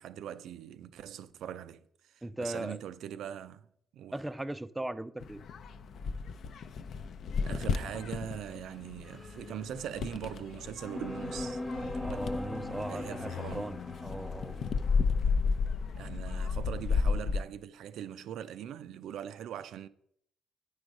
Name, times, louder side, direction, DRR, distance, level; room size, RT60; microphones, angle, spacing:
voice 1, 0.0-3.7 3.9-4.2 7.4-12.3 12.9-13.7 16.0-19.9, right 10 dB, 80° right, 0.4 m, -41 dB
voice 2, 2.2-2.8 4.1-5.4 12.0-14.5, right 1 dB, 10° right, 0.3 m, -38 dB
sound 1, 5.2-17.4, left 5 dB, 65° left, 0.5 m, -33 dB
sound 2, 9.0-10.2 10.8-15.5, left 1 dB, 5° left, 0.8 m, -41 dB
8.9 x 4.8 x 5.1 m
cardioid pair, 90°, 0 cm